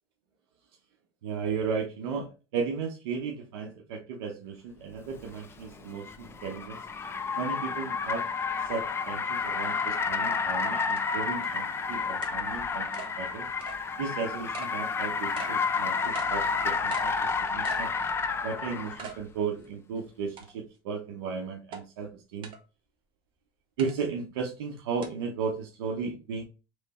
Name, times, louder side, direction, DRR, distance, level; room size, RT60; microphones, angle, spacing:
voice 1, 1.2-6.9 7.4-8.2 8.6-12.9 13.2-13.5 14.0-17.9 18.4-22.5 23.8-26.4, right 5 dB, 90° right, 1 dB, 0.8 m, -35 dB
Car, 5.2-19.1, left 5 dB, 20° left, 0.5 m, -30 dB
sound 1, 10.2-10.3 11.0-11.1 11.4-11.5 12.2-12.4 12.9-13.1 13.6-13.8 14.5-14.7 15.4-15.5 16.1-16.3 16.9-17.1 17.6-17.9 18.3-18.4 19.0-19.2 19.6-19.7 20.4-20.8 21.7-21.8 22.4-22.6 23.8-24.0 25.0-25.1, right 6 dB, 45° right, 1.1 m, -42 dB
3.4 x 3.2 x 4.1 m, 0.31 s
supercardioid pair, 125°, 12 cm